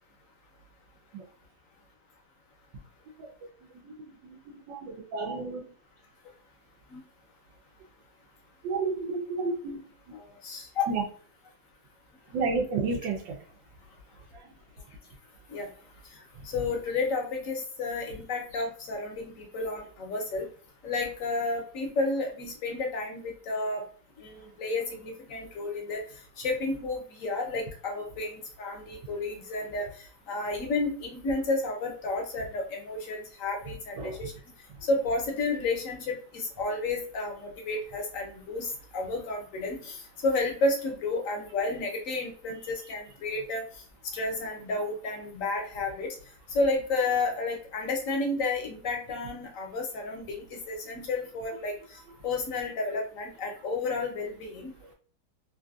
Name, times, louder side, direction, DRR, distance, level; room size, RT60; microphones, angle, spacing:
voice 1, 4.2-5.6 8.6-9.8 10.9-11.0 12.3-13.4 14.3-14.5 34.0-34.3 54.8-54.9, right 4 dB, 85° right, 0 dB, 1.4 m, -31 dB
voice 2, 10.1-10.9 15.5-15.7 16.1-20.5 20.8-23.8 24.2-26.0 26.4-34.3 34.8-43.8 44.1-46.2 46.5-54.7, left 3 dB, 65° left, 2 dB, 0.9 m, -31 dB
3.3 x 2.6 x 2.3 m, 0.43 s
omnidirectional pair, 1.9 m